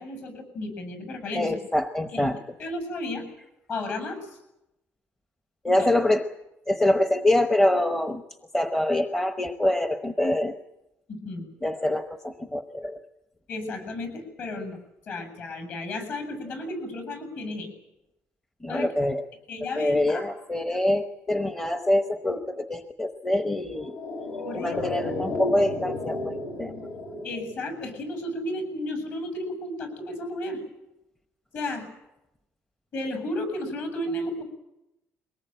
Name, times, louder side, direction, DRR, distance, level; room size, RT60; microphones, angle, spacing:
voice 1, 0.0-1.6 2.1-2.3 2.6-3.2 3.7-4.4 5.6-5.9 11.1-11.5 13.5-14.8 15.0-17.7 18.7-18.9 19.5-20.3 24.4-24.8 27.2-30.6 31.5-31.9 32.9-34.4, left 1 dB, 45° left, 9 dB, 7.2 m, -33 dB
voice 2, 1.3-2.4 5.6-6.2 6.7-8.2 8.5-10.5 11.6-13.0 18.6-19.2 19.8-24.0 24.5-26.3 26.6-26.7, left 1 dB, 10° left, 6 dB, 1.0 m, -25 dB
Processed chime glissando, 23.6-28.2 28.5-28.6, left 2 dB, 70° left, 7.1 m, -33 dB
23.0 x 19.5 x 8.9 m, 0.91 s
cardioid pair, 160°, 5 cm